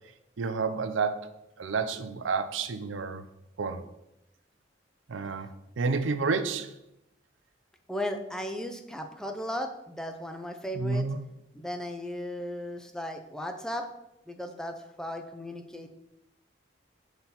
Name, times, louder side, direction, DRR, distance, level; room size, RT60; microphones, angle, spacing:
voice 1, 0.4-1.3 1.6-3.2 3.6-3.8 5.1-5.5 5.8-6.7 10.7-11.2, right 4 dB, 90° right, 10 dB, 0.5 m, -29 dB
voice 2, 7.9-11.1 11.5-13.9 14.3-15.9, left 1 dB, 5° left, 5 dB, 0.5 m, -36 dB
6.1 x 4.0 x 5.6 m, 0.88 s
head